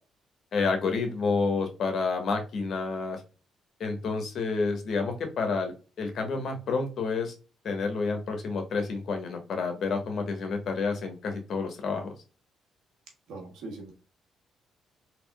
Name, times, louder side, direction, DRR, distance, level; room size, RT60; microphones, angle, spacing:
voice 1, 0.5-3.2 3.8-7.3 7.6-12.1, left 4 dB, 60° left, 5 dB, 1.1 m, -29 dB
voice 2, 13.3-13.9, right 2 dB, 80° right, 0 dB, 1.3 m, -40 dB
3.5 x 2.9 x 2.2 m, 0.33 s
cardioid pair, 90°, 0 cm